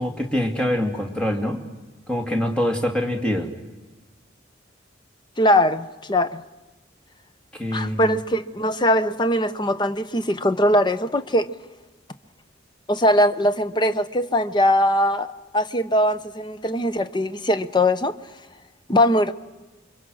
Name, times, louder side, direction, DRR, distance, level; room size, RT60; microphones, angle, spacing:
voice 1, 0.0-1.6 2.1-3.5 7.6-8.2, left 1 dB, 5° left, 3 dB, 2.4 m, -24 dB
voice 2, 5.4-6.4 7.7-11.5 12.9-18.1 18.9-19.3, left 1 dB, 25° left, 12 dB, 0.9 m, -21 dB
27.5 x 23.5 x 6.4 m, 1.2 s
head